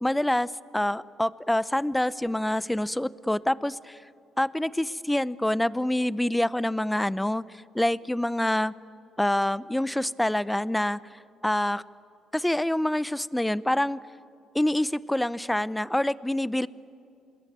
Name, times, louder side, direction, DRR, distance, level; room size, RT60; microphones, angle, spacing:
voice 1, 0.0-4.0 4.4-7.4 7.7-8.7 9.2-11.0 11.4-11.8 12.3-14.0 14.5-16.7, left 1 dB, 5° left, 18 dB, 0.6 m, -26 dB
27.5 x 21.0 x 9.5 m, 2.6 s
cardioid pair, 90°, 0 cm